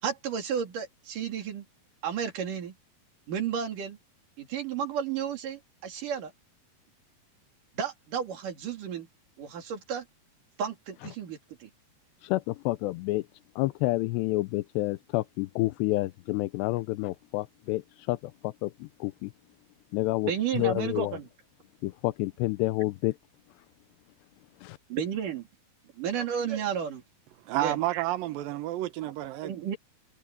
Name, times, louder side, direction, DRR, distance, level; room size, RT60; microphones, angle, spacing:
voice 1, 0.0-1.7 2.0-2.7 3.3-4.0 4.4-6.3 7.7-9.1 9.4-10.1 10.6-11.7 20.2-21.3 24.9-25.5 26.0-27.0 27.6-27.8 29.0-29.1 29.4-29.8, right 8 dB, 55° right, 4.0 m, -32 dB
voice 2, 12.2-13.3 13.6-19.3 19.9-21.2 21.8-23.2 24.6-24.8, left 19 dB, 85° left, 2.8 m, -29 dB
voice 3, 27.5-29.6, right 15 dB, 70° right, 2.5 m, -30 dB
omnidirectional pair, 4.8 m